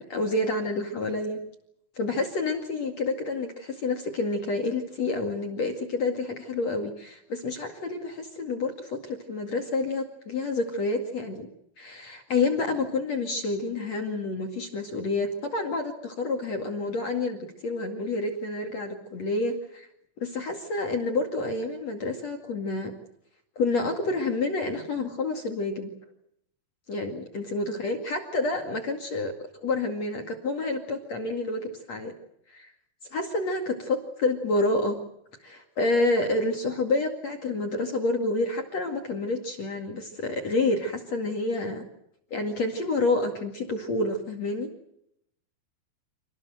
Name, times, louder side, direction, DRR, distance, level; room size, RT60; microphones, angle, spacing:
voice 1, 0.0-1.4 1.9-11.5 11.8-19.9 20.2-22.9 23.6-25.9 26.9-29.3 29.6-32.1 32.5-32.7 33.1-35.0 35.4-41.8 42.3-44.7, left 2 dB, 45° left, 3 dB, 2.7 m, -28 dB
28.0 x 19.0 x 7.9 m, 0.76 s
omnidirectional pair, 5.3 m